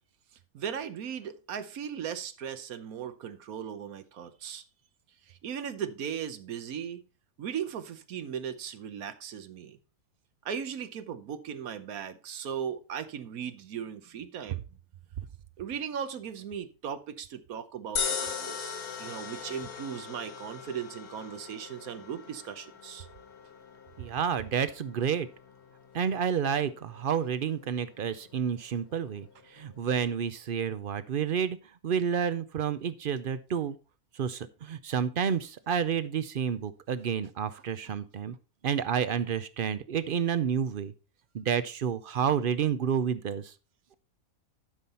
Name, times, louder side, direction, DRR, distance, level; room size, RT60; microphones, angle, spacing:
voice 1, 0.5-4.6 5.3-7.0 7.4-9.8 10.4-14.6 15.6-23.1 37.8-37.9, right 8 dB, 80° right, 1.3 m, -37 dB
sound 1, 18.0-30.3, left 6 dB, 90° left, 1.7 m, -41 dB
voice 2, 24.0-25.3 25.9-31.6 31.8-33.8 34.1-38.4 38.6-40.9 41.3-43.5, right 7 dB, 60° right, 0.6 m, -30 dB
11.5 x 5.5 x 4.2 m
omnidirectional pair, 1.5 m